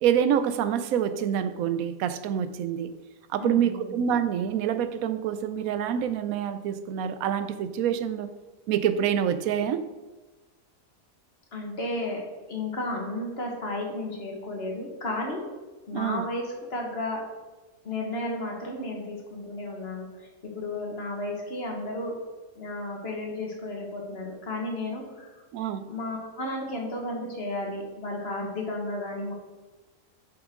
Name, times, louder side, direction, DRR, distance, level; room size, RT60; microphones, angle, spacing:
voice 1, 0.0-2.9 3.3-8.4 8.7-9.9 15.9-16.2 25.5-25.9, right 9 dB, 90° right, 12 dB, 1.0 m, -26 dB
voice 2, 3.4-3.9 11.5-12.2 12.5-15.4 15.9-17.2 17.8-22.1 22.6-25.3 25.9-29.3, left 2 dB, 50° left, 0 dB, 1.6 m, -33 dB
7.3 x 6.0 x 3.7 m, 1.2 s
omnidirectional pair, 1.4 m